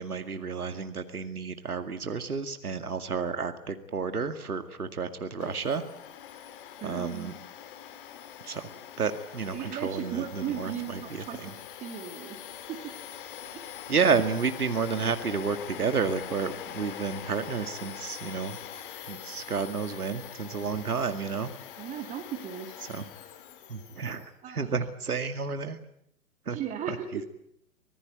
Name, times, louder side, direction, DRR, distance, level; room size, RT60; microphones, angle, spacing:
voice 1, 0.0-5.8 6.8-7.3 8.4-8.7 9.0-11.5 13.9-18.6 19.1-21.5 22.9-23.0 23.7-25.8 26.5-26.6 26.9-27.0, right 5 dB, 75° right, 8 dB, 2.2 m, -31 dB
Domestic sounds home sounds, 5.4-24.3, left 10 dB, 35° left, 2.0 m, -43 dB
voice 2, 6.8-7.4 9.5-12.4 12.7-12.9 13.5-13.8 16.9-17.0 21.8-22.8 24.4-24.7 26.5-27.2, right 9 dB, 15° right, 5 dB, 2.1 m, -37 dB
26.0 x 18.5 x 9.3 m, 0.74 s
figure-of-eight pair, 125°, 46 cm